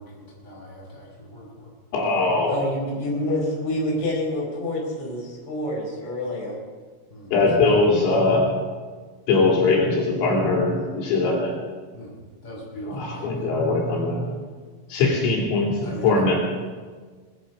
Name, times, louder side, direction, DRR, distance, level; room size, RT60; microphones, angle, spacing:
voice 1, 0.0-1.7 7.1-7.5 11.9-12.2 12.4-13.5 15.8-16.2, equal, 10° left, -5 dB, 5.2 m, -40 dB
voice 2, 1.9-2.6 7.3-8.5 9.3-11.6 12.9-14.4 14.9-16.4, left 3 dB, 75° left, -2 dB, 5.5 m, -21 dB
voice 3, 2.4-6.6 7.6-7.7, left 1 dB, 30° left, -3 dB, 5.2 m, -27 dB
21.0 x 11.5 x 5.5 m, 1.5 s
omnidirectional pair, 6.0 m